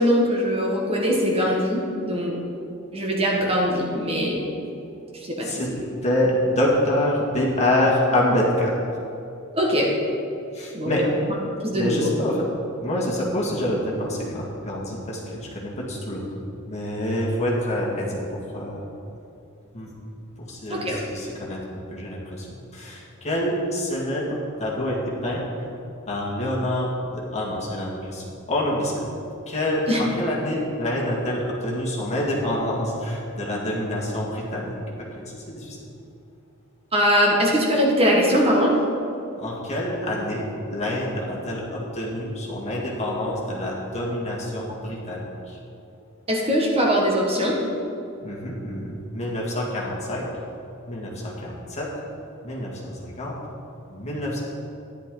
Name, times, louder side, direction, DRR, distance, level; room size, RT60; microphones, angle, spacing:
voice 1, 0.0-2.3 2.9-4.4 5.4-5.5 9.5-9.9 10.7-11.1 11.6-12.1 20.7-21.0 29.9-30.0 36.9-38.7 46.3-47.5, equal, 30° right, -3 dB, 1.6 m, -21 dB
voice 2, 5.4-5.7 6.0-8.7 10.5-11.1 11.8-12.5 12.8-16.3 16.6-18.9 19.7-19.9 20.4-22.5 22.7-25.4 26.1-29.0 29.5-35.8 39.4-45.6 48.2-50.3 50.9-51.9 52.4-53.4 53.9-54.4, left 1 dB, 30° left, -4 dB, 2.0 m, -26 dB
13.0 x 10.5 x 3.9 m, 2.7 s
head